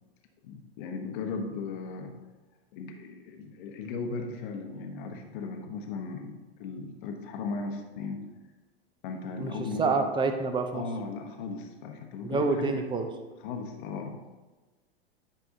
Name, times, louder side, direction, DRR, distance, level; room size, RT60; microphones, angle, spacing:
voice 1, 0.4-2.1 2.7-8.2 9.0-10.0 10.7-12.9 13.4-14.2, left 4 dB, 50° left, 4 dB, 1.0 m, -37 dB
voice 2, 9.4-10.8 12.2-13.1, right 4 dB, 15° right, 7 dB, 0.6 m, -28 dB
10.0 x 4.7 x 2.7 m, 1.2 s
hypercardioid pair, 105°, 32 cm